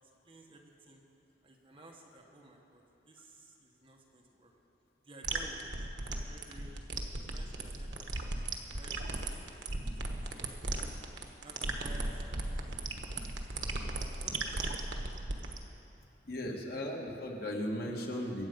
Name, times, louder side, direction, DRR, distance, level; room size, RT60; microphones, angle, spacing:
voice 1, 0.2-1.0 1.4-4.5 5.0-8.1 8.7-9.9 10.3-10.9 11.4-13.3 13.9-15.1, right 1 dB, 30° right, 0 dB, 1.5 m, -55 dB
sound 1, 5.2-15.6, right 2 dB, 75° right, 1.2 m, -36 dB
voice 2, 16.2-18.5, equal, 55° left, 0 dB, 1.8 m, -36 dB
23.0 x 8.3 x 5.3 m, 2.7 s
head